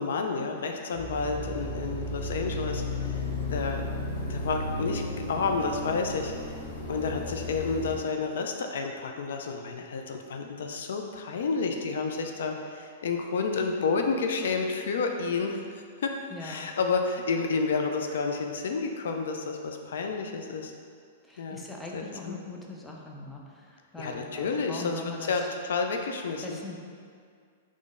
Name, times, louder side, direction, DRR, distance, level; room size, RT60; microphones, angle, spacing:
voice 1, 0.0-3.2 3.5-3.8 4.3-5.0 5.3-6.6 6.9-16.1 16.4-20.7 21.4-21.6 21.9-22.3 24.0-26.6, left 4 dB, 80° left, 3 dB, 0.4 m, -30 dB
sound 1, 0.9-8.0, left 1 dB, 50° left, 1.1 m, -34 dB
voice 2, 16.3-16.7 21.2-25.5 26.4-26.8, left 2 dB, 5° left, -2 dB, 0.5 m, -41 dB
3.9 x 3.1 x 3.7 m, 2.1 s
hypercardioid pair, 140°, 0 cm